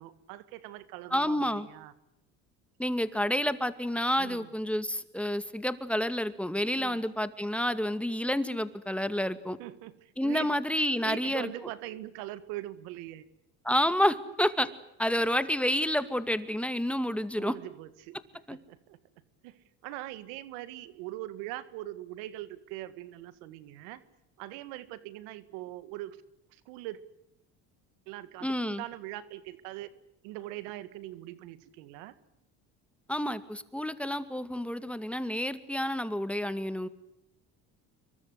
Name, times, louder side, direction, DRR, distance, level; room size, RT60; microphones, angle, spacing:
voice 1, 0.0-1.9 4.2-4.5 6.7-7.0 9.6-10.6 11.0-13.2 17.3-19.0 19.4-24.0 24.4-26.2 26.5-27.0 28.1-29.9 30.2-32.2, right 15 dB, 85° right, 15 dB, 2.0 m, -42 dB
voice 2, 1.1-1.7 2.8-9.6 10.2-11.5 13.6-14.7 15.0-17.5 18.5-18.6 28.4-28.8 33.1-36.9, equal, 5° left, 12 dB, 2.2 m, -29 dB
26.5 x 23.5 x 8.1 m, 0.84 s
supercardioid pair, 95°, 34 cm